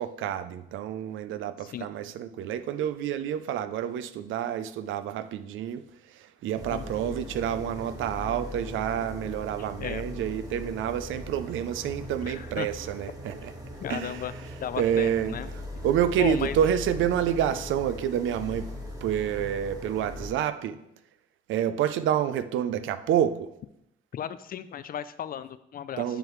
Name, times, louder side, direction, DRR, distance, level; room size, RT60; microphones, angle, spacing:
voice 1, 0.0-13.5 13.9-18.7 19.0-20.8 21.5-23.5 26.0-26.2, right 9 dB, 80° right, 12 dB, 0.5 m, -28 dB
sound 1, 6.5-20.3, left 1 dB, 20° right, 1.6 m, -40 dB
voice 2, 12.2-12.7 13.8-14.3 14.6-15.5 16.2-16.6 24.1-26.0, left 9 dB, 45° left, 14 dB, 0.4 m, -34 dB
8.9 x 4.8 x 3.2 m, 0.82 s
cardioid pair, 90°, 20 cm